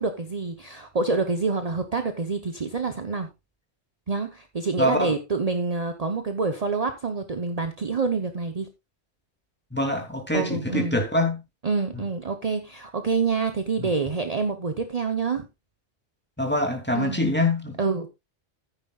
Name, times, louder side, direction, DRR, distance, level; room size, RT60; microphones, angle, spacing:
voice 1, 0.0-3.3 4.1-8.7 10.3-11.0 11.6-15.5 16.9-17.2 17.8-18.1, right 4 dB, 40° right, 1.0 m, -27 dB
voice 2, 4.8-5.1 9.7-11.4 13.8-13.9 16.4-17.8, left 1 dB, 10° left, 2.7 m, -24 dB
14.5 x 9.5 x 2.4 m
omnidirectional pair, 1.1 m